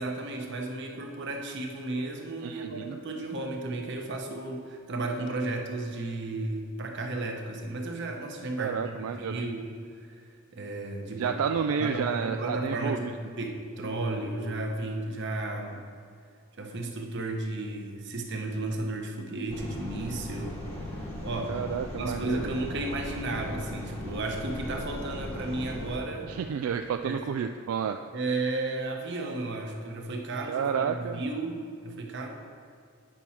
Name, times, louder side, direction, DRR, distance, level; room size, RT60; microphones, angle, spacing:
voice 1, 0.0-9.7 10.0-10.2 10.5-11.4 11.8-15.8 16.6-20.6 21.2-21.6 22.0-26.3 27.0-27.2 28.1-32.3, right 2 dB, 55° right, 2 dB, 1.0 m, -33 dB
voice 2, 2.4-3.0 8.6-9.4 11.2-13.1 21.5-22.5 26.3-28.0 30.5-31.2, right 7 dB, 80° right, 6 dB, 0.3 m, -30 dB
sound 1, 19.5-26.0, left 1 dB, 25° left, 1.3 m, -38 dB
8.9 x 6.1 x 4.3 m, 2.3 s
head